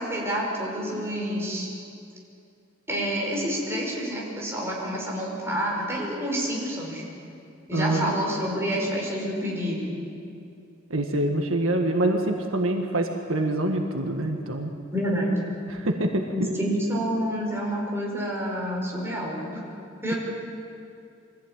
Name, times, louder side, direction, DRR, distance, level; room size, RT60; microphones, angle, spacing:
voice 1, 0.0-1.7 2.9-7.0 7.7-9.9 14.9-15.3 16.3-19.6 20.0-20.1, equal, 15° right, -3 dB, 5.4 m, -28 dB
voice 2, 7.7-8.1 10.9-14.7 15.7-16.5, right 1 dB, 85° right, 3 dB, 1.8 m, -25 dB
24.0 x 15.5 x 9.0 m, 2.5 s
head